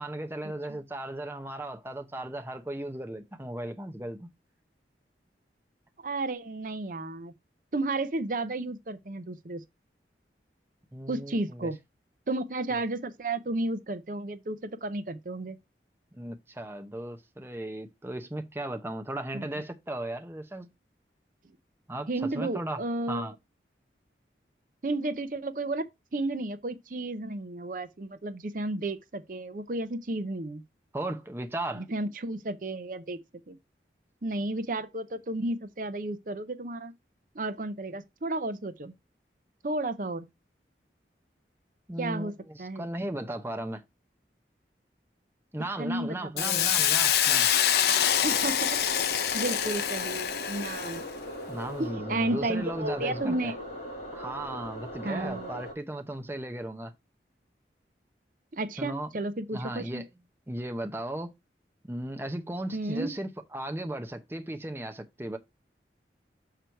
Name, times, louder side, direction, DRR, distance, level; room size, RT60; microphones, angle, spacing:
voice 1, 0.0-4.3 10.9-11.7 12.7-12.8 16.1-20.7 21.9-22.8 23.1-23.3 30.9-31.9 41.9-43.8 45.5-47.5 51.5-53.5 54.1-56.9 58.8-59.1 59.5-60.1 60.5-61.3 61.9-65.4, right 1 dB, 15° right, 0.7 m, -36 dB
voice 2, 6.0-7.3 7.7-9.6 11.1-11.8 12.3-15.6 19.3-19.5 22.1-23.3 24.8-25.9 26.1-30.6 31.8-33.2 33.5-33.6 34.2-36.9 37.3-38.9 39.6-40.3 42.0-42.3 42.6-42.9 45.8-46.6 48.2-48.8 49.3-51.0 51.8-53.6 55.0-55.5 58.5-60.0 62.7-63.1, right 2 dB, 50° right, 0.6 m, -32 dB
Hiss, 46.4-51.1, left 10 dB, 65° left, 0.6 m, -25 dB
sound 1, 48.0-55.7, equal, 35° left, 2.7 m, -40 dB
6.8 x 4.5 x 4.4 m
head